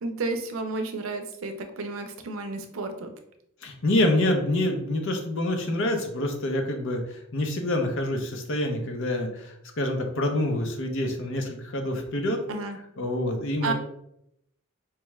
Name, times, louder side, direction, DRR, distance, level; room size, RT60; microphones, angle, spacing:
voice 1, 0.0-3.1 12.5-12.8 13.6-13.7, right 3 dB, 65° right, 6 dB, 0.5 m, -31 dB
voice 2, 3.6-12.4 13.0-13.7, left 1 dB, 60° left, 4 dB, 0.7 m, -27 dB
4.6 x 2.3 x 3.1 m, 0.75 s
head